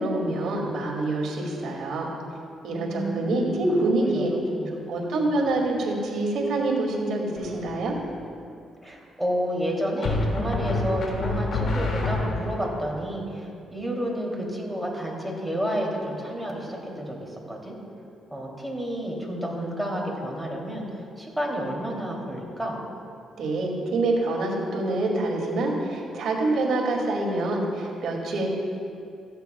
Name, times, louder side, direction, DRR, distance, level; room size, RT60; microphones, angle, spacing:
voice 1, 0.0-2.1 2.6-4.3 4.9-8.0 23.4-28.5, right 2 dB, 75° right, -1 dB, 2.3 m, -26 dB
voice 2, 2.7-4.7 5.4-5.5 8.8-17.7 18.3-20.8 21.2-22.8, equal, 5° right, -2 dB, 2.9 m, -30 dB
sound 1, 7.4-7.8 10.0-12.7, left 2 dB, 65° left, 2.2 m, -27 dB
16.5 x 14.5 x 2.3 m, 2.5 s
cardioid pair, 90°, 0 cm